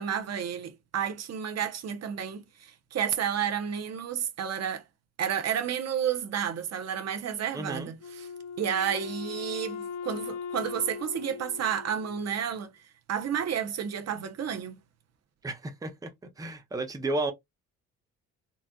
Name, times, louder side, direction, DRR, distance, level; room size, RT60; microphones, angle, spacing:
voice 1, 0.0-4.8 5.2-8.3 8.6-12.7 13.1-14.8, right 8 dB, 55° right, 0.8 m, -31 dB
voice 2, 7.5-7.9 15.4-16.1 16.4-17.3, right 2 dB, 10° right, 0.7 m, -32 dB
Wind instrument woodwind instrument, 8.0-12.5, left 6 dB, 70° left, 0.8 m, -39 dB
4.1 x 2.4 x 2.3 m
cardioid pair, 90°, 30 cm